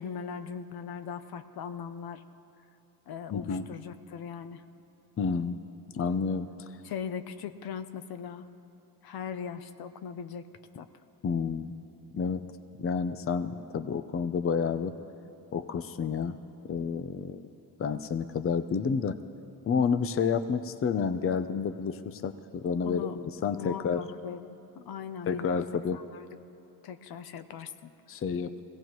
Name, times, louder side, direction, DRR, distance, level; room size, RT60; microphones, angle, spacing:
voice 1, 0.0-2.2 3.1-4.6 6.8-8.5 9.0-10.5 10.7-10.9 22.9-23.2 23.4-25.5 25.9-26.4 26.8-27.9, left 7 dB, 70° left, 10 dB, 0.8 m, -39 dB
voice 2, 3.3-3.7 5.2-5.6 5.9-6.5 11.2-11.7 12.1-12.4 12.8-14.9 15.5-16.4 16.6-17.5 17.8-19.2 19.7-24.0 25.3-26.0 28.1-28.6, left 6 dB, 35° left, 10 dB, 0.6 m, -30 dB
21.5 x 17.0 x 3.1 m, 2.8 s
cardioid pair, 95°, 39 cm